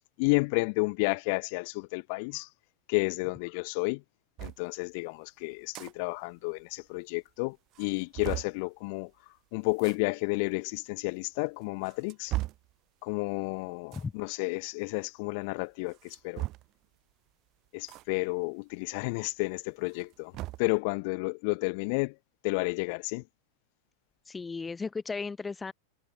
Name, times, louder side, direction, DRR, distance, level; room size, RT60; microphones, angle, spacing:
voice 1, 0.2-2.5 2.9-4.0 4.4-9.1 9.5-12.3 13.0-16.4 17.7-20.3 20.6-22.1 22.4-23.2, left 31 dB, 55° left, 4.7 m, -31 dB
sound 1, 4.4-4.6 5.5-5.9 6.3-6.4 6.6-6.7 7.3-7.4 7.7-8.6 9.7-10.0 10.8-10.9 11.6-12.7 13.8-14.1 15.9-16.8 17.9-18.0 18.4-18.5 19.8-20.7, right 18 dB, 45° right, 5.7 m, -37 dB
voice 2, 24.3-25.7, left 4 dB, 15° left, 2.3 m, -35 dB
hypercardioid pair, 95°, 0 cm